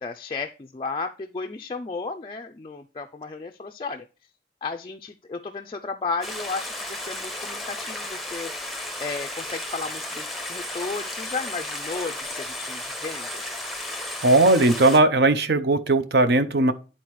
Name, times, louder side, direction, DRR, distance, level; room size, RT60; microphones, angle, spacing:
voice 1, 0.0-4.1 4.6-13.4, left 4 dB, 30° left, 0.3 m, -34 dB
Stream, 6.2-15.0, left 1 dB, ahead, 0.7 m, -34 dB
voice 2, 14.2-16.7, right 2 dB, 65° right, 0.6 m, -18 dB
10.0 x 4.2 x 3.1 m
head